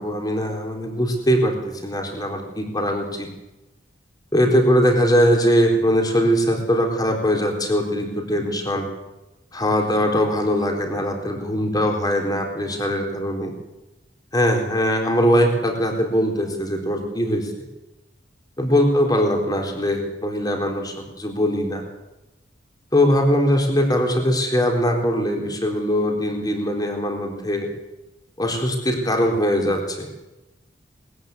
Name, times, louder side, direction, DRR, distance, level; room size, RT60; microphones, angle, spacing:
voice 1, 0.0-1.6 1.8-3.3 4.3-8.9 9.5-13.5 14.3-17.5 18.6-21.8 22.9-27.7 28.4-30.1, equal, 20° left, 3 dB, 4.1 m, -21 dB
20.5 x 14.5 x 9.7 m, 1.0 s
head